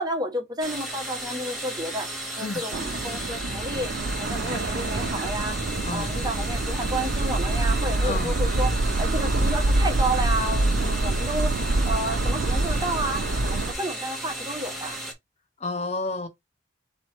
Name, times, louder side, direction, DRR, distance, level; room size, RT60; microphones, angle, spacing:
voice 1, 0.0-2.1 2.4-3.9 4.2-5.6 5.9-11.5 11.8-15.0, right 1 dB, 20° right, 1.3 m, -31 dB
sound 1, 0.6-15.1, right 1 dB, ahead, 1.7 m, -35 dB
sound 2, 2.7-13.7, right 2 dB, 65° right, 0.7 m, -26 dB
voice 2, 5.8-6.1 8.0-8.3 15.6-16.3, left 3 dB, 35° left, 0.6 m, -30 dB
3.9 x 3.1 x 4.4 m
head